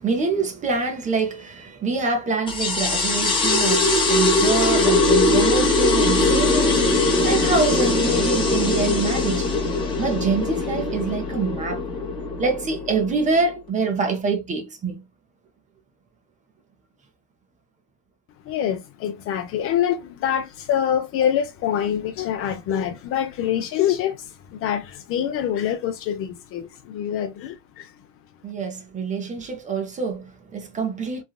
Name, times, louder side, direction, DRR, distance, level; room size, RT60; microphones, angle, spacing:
voice 1, 0.0-9.5 10.0-11.8 12.4-15.0 28.4-31.2, right 4 dB, 20° right, 0.6 m, -25 dB
sound 1, 2.5-13.5, left 2 dB, 15° left, 0.9 m, -21 dB
voice 2, 18.4-27.9, left 9 dB, 40° left, 0.5 m, -25 dB
3.3 x 2.2 x 2.2 m
supercardioid pair, 135°, 36 cm